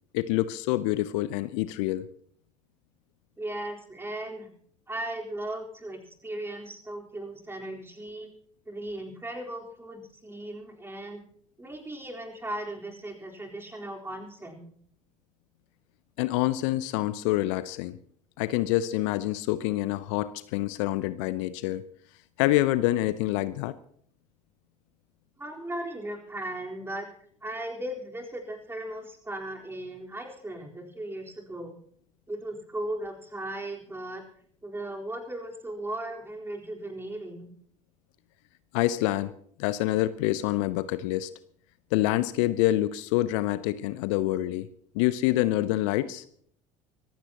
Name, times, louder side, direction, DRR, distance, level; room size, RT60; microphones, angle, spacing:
voice 1, 0.1-2.1 16.2-18.0 18.4-21.8 22.4-23.8 38.7-39.3 39.6-41.3 41.9-44.7 44.9-46.2, left 16 dB, 65° left, 16 dB, 0.6 m, -26 dB
voice 2, 3.4-4.5 4.9-8.3 8.7-11.2 11.6-14.7 25.4-27.1 27.4-31.7 32.3-34.2 34.6-37.5, right 1 dB, 15° right, 0 dB, 4.1 m, -37 dB
24.5 x 15.0 x 3.0 m, 0.62 s
figure-of-eight pair, 60°, 17 cm